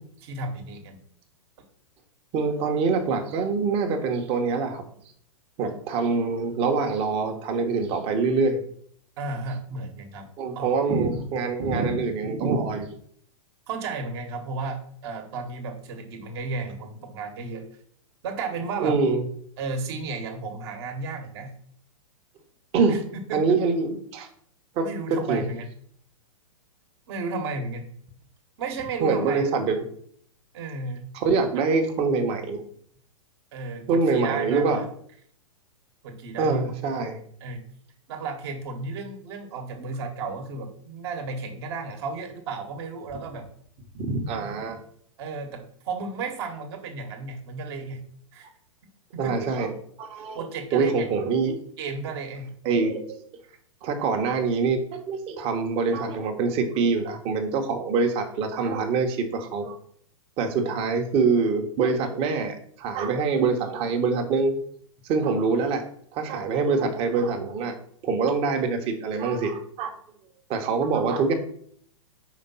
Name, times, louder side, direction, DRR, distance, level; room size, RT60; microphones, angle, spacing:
voice 1, 0.2-1.0 9.2-10.3 10.5-10.8 13.7-17.6 18.2-19.0 19.6-21.5 22.9-23.0 23.3-23.4 24.8-25.6 27.1-27.9 28.6-29.5 30.5-31.1 33.5-34.8 36.0-36.7 37.4-37.6 38.1-43.4 45.2-48.0 48.3-48.5 49.1-49.3 50.3-51.1 51.8-52.5, right 4 dB, 50° right, 4 dB, 1.4 m, -33 dB
voice 2, 2.3-4.8 5.6-8.6 10.4-12.9 18.8-19.3 22.7-23.0 23.3-24.3 24.8-25.4 29.0-29.8 31.1-32.6 33.9-34.8 36.4-37.2 43.9-44.8 49.2-49.7 50.0-50.5 50.7-51.6 52.6-53.2 53.8-59.8 60.4-64.6 65.0-65.8 66.1-67.7 68.0-69.9 70.5-71.3, right 4 dB, 35° right, 5 dB, 1.1 m, -25 dB
5.1 x 3.6 x 5.5 m, 0.62 s
hypercardioid pair, 120°, 17 cm